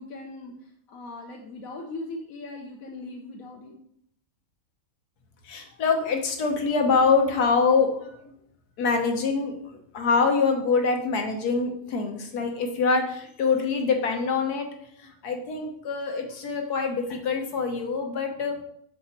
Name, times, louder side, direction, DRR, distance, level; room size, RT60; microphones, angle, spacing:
voice 1, 0.0-3.7, left 2 dB, 70° left, 1 dB, 1.2 m, -39 dB
voice 2, 5.4-8.3 8.8-14.7 15.0-18.6, left 4 dB, 90° left, 4 dB, 1.6 m, -25 dB
6.4 x 4.9 x 4.3 m, 0.71 s
omnidirectional pair, 1.6 m